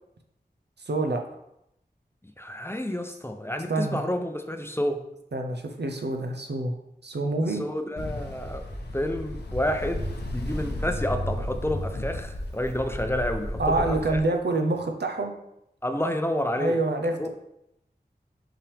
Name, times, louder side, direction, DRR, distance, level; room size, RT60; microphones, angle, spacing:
voice 1, 0.9-1.2 3.7-4.0 5.3-6.8 7.0-7.6 13.6-15.3 16.6-17.3, right 2 dB, 85° right, 3 dB, 0.7 m, -26 dB
voice 2, 2.4-5.0 7.4-8.6 8.9-14.2 15.8-16.8 17.2-17.3, left 1 dB, 15° left, 6 dB, 0.6 m, -29 dB
Ocean, 8.0-14.2, left 1 dB, 80° left, 0.8 m, -33 dB
5.7 x 5.0 x 3.4 m, 0.81 s
wide cardioid pair, 65°, 17 cm